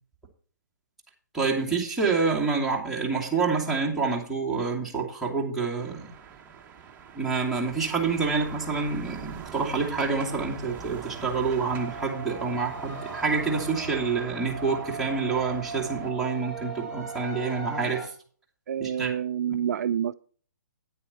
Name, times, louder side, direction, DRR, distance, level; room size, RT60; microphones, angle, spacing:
voice 1, 1.3-6.1 7.2-18.1 18.8-19.1 19.5-19.6, right 4 dB, ahead, 2.4 m, -27 dB
sound 1, 5.8-16.1, right 7 dB, 20° right, 1.1 m, -43 dB
sound 2, 11.7-18.1, right 4 dB, 30° left, 4.9 m, -39 dB
voice 2, 18.7-20.1, right 9 dB, 55° right, 0.4 m, -28 dB
9.3 x 8.6 x 4.2 m
hypercardioid pair, 140°, 10 cm